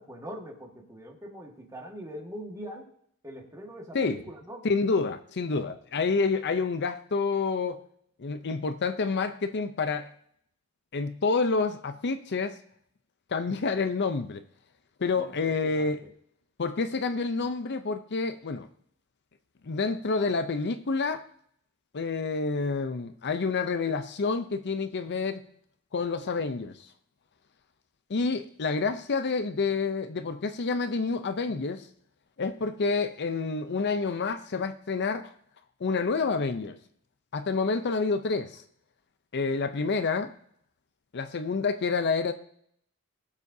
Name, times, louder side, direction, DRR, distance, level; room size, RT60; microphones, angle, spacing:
voice 1, 0.0-2.9 3.2-4.6 15.2-16.1, equal, 15° right, 1.7 m, -42 dB
voice 2, 4.6-7.8 8.2-10.1 10.9-12.6 13.3-14.4 15.0-16.0 16.6-18.7 19.6-21.2 21.9-25.4 25.9-26.8 28.1-31.9 32.4-35.3 35.8-36.8 37.3-38.6 39.3-40.3 41.1-42.3, left 4 dB, 50° left, 0.6 m, -28 dB
20.5 x 7.4 x 2.7 m
head